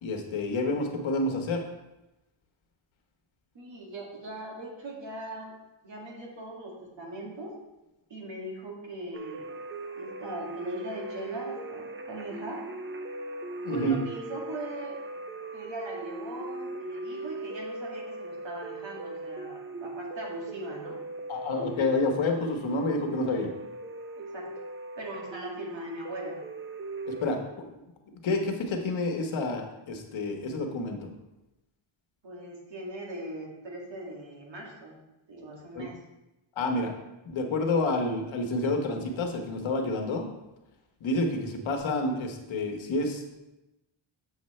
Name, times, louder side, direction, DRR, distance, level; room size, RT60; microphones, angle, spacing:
voice 1, 0.0-1.6 13.6-14.0 21.3-23.5 27.1-27.7 28.2-31.1 35.7-35.9 36.6-36.9 37.2-40.3 41.0-43.2, left 2 dB, 70° left, 3 dB, 1.3 m, -29 dB
voice 2, 3.5-5.5 5.8-7.5 8.1-9.5 10.0-12.6 13.7-15.0 15.5-21.0 24.3-24.5 25.0-26.4 32.2-35.0 35.3-36.0, right 1 dB, 60° right, -2 dB, 2.2 m, -40 dB
sound 1, 9.1-27.3, right 2 dB, 25° right, 0.6 m, -39 dB
7.1 x 6.7 x 3.2 m, 0.96 s
cardioid pair, 95°, 49 cm